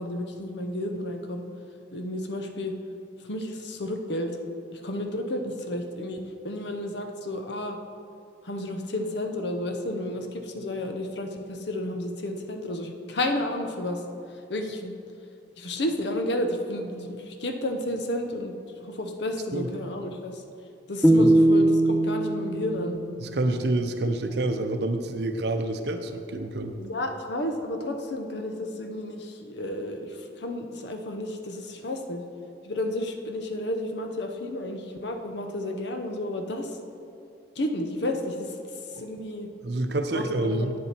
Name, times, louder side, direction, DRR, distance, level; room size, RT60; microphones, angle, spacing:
voice 1, 0.0-1.5 1.9-2.7 3.3-4.4 4.7-7.8 8.4-14.0 14.5-14.9 15.6-18.5 18.8-20.4 20.9-23.0 26.8-32.2 32.6-36.7 37.6-38.5 39.0-39.5 40.1-40.7, left 1 dB, 65° left, 5 dB, 0.8 m, -31 dB
sound 1, 21.0-24.2, right 1 dB, 5° left, 0.4 m, -22 dB
voice 2, 23.2-26.8 39.6-40.7, right 2 dB, 60° right, 7 dB, 0.6 m, -27 dB
8.6 x 7.0 x 4.4 m, 2.6 s
head